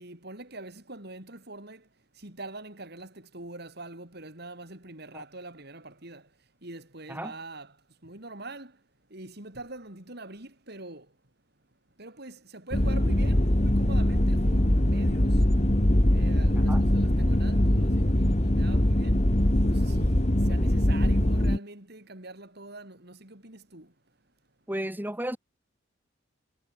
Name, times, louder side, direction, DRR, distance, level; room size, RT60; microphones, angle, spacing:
voice 1, 0.0-1.8 2.2-6.3 6.6-7.7 8.0-8.7 9.1-11.1 12.0-15.4 16.1-19.2 19.6-23.9, right 2 dB, 55° right, 5.0 m, -44 dB
sound 1, 12.7-21.6, left 1 dB, 35° left, 1.9 m, -22 dB
voice 2, 24.7-25.4, right 1 dB, 10° right, 3.7 m, -34 dB
head